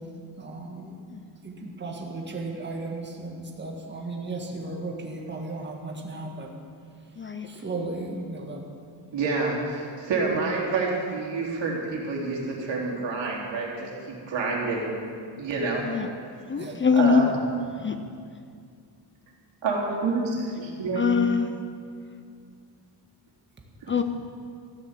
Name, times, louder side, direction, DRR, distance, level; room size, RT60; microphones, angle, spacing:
voice 1, 0.4-1.0 1.4-6.5 7.5-8.6 16.6-16.8 20.8-20.9, right 2 dB, 25° right, 0 dB, 1.8 m, -35 dB
voice 2, 7.2-7.5 15.8-16.1 16.5-17.3 17.8-18.0 21.0-21.5 23.9-24.0, left 6 dB, 25° left, 7 dB, 0.6 m, -23 dB
voice 3, 9.1-15.0 15.4-15.8 16.9-17.3 19.6-21.0 23.8-24.0, right 3 dB, 75° right, -3 dB, 3.6 m, -28 dB
14.5 x 9.8 x 7.5 m, 2.3 s
cardioid pair, 135°, 45 cm